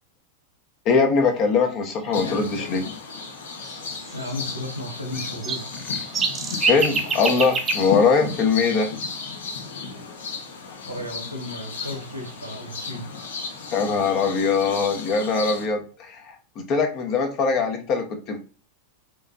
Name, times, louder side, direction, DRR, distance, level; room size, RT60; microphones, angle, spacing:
voice 1, 0.8-2.9 6.7-8.9 13.7-18.4, left 5 dB, 40° left, 4 dB, 1.0 m, -22 dB
sound 1, 1.6-1.7 2.0-2.2 3.6-4.8 5.1-9.0 11.2-13.0 13.7-13.8 14.1-14.5, right 4 dB, 20° right, 0.7 m, -30 dB
sound 2, 2.1-15.6, left 5 dB, 65° left, 1.1 m, -34 dB
voice 2, 4.1-5.7 10.9-13.1, left 1 dB, 90° right, 1 dB, 1.5 m, -34 dB
5.2 x 3.4 x 2.6 m, 0.37 s
figure-of-eight pair, 90°, 0 cm